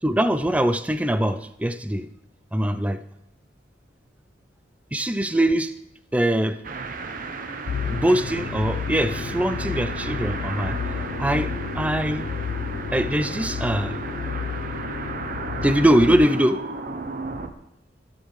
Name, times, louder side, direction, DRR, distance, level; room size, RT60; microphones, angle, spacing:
voice 1, 0.0-2.1 2.5-3.0 4.9-5.7 6.1-6.6 7.9-10.8 11.2-12.3 12.9-14.0 15.6-16.6, right 1 dB, 10° right, 11 dB, 0.3 m, -22 dB
sound 1, 6.6-17.5, right 3 dB, 45° right, 0.7 m, -34 dB
sound 2, 7.7-16.3, left 6 dB, 65° left, 0.3 m, -31 dB
15.5 x 6.5 x 3.2 m, 0.88 s
head